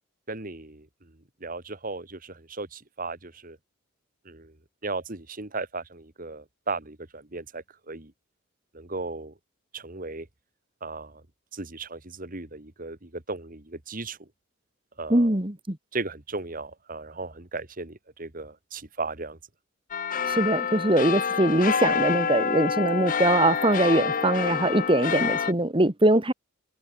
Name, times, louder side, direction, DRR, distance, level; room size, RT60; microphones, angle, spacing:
voice 1, 0.3-0.9 1.4-3.6 4.3-4.5 4.8-8.1 8.7-9.3 9.7-10.3 10.8-11.2 11.5-14.2 15.0-15.4 15.9-19.4, right 3 dB, 40° right, 2.0 m, -36 dB
voice 2, 15.1-15.8 20.3-26.3, right 1 dB, 25° right, 1.8 m, -22 dB
sound 1, 19.9-25.5, left 6 dB, 40° left, 0.7 m, -27 dB
open air
head